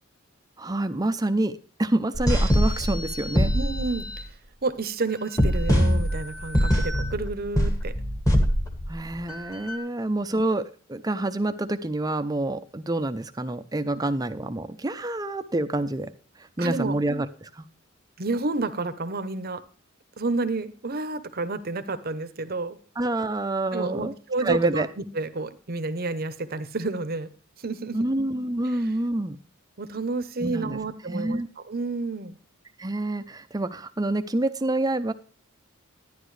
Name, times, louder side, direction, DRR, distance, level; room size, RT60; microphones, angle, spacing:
voice 1, 0.6-3.5 8.9-16.1 16.4-17.7 23.0-24.1 24.4-24.9 27.9-29.4 30.4-30.8 31.1-31.5 32.8-35.1, right 2 dB, 15° right, 10 dB, 0.5 m, -27 dB
sound 1, 2.1-4.2 5.4-9.8, equal, 15° left, 1.3 m, -23 dB
voice 2, 3.5-4.3 4.6-7.9 16.6-16.9 18.2-19.6 20.2-22.8 23.7-27.3 27.6-28.0 28.6-28.8 29.8-31.4 31.7-32.4, right 3 dB, 45° right, 11 dB, 0.8 m, -30 dB
11.5 x 10.5 x 3.2 m, 0.40 s
head